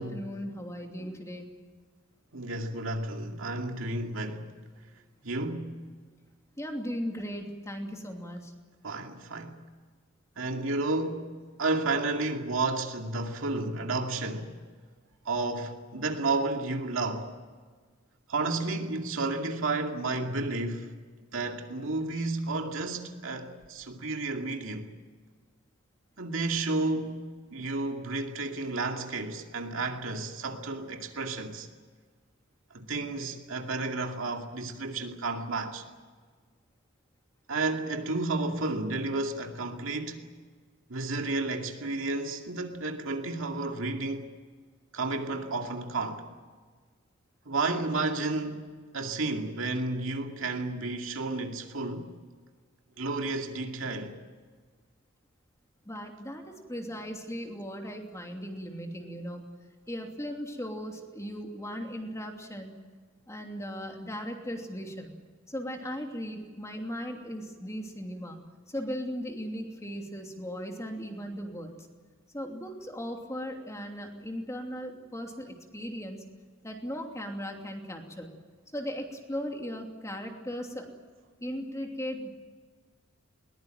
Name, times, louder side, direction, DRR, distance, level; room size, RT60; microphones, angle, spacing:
voice 1, 0.0-1.5 6.6-8.5 55.9-59.4 59.9-62.8 63.3-65.1 65.5-68.4 68.7-71.8 72.3-76.2 76.6-78.3 78.7-80.9 81.4-82.3, equal, 15° left, 2.8 m, -37 dB
voice 2, 2.3-4.5 5.2-5.8 8.8-9.6 10.4-11.3 11.6-14.5 15.2-17.3 18.3-20.9 21.3-24.9 26.2-31.7 32.7-35.8 37.5-40.3 40.9-44.3 44.9-46.3 47.5-52.1 53.0-54.1, right 3 dB, 65° right, 2.4 m, -32 dB
21.5 x 20.0 x 9.0 m
head